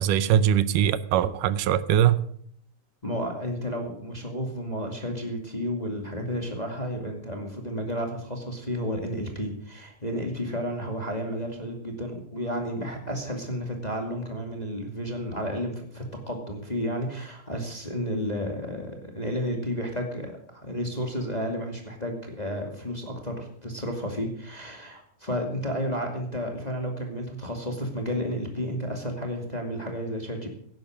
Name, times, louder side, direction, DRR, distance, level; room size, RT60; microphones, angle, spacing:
voice 1, 0.0-2.2, right 10 dB, 80° right, 2.3 m, -22 dB
voice 2, 3.0-30.5, equal, 15° left, 1.8 m, -32 dB
16.5 x 10.5 x 6.5 m
omnidirectional pair, 3.8 m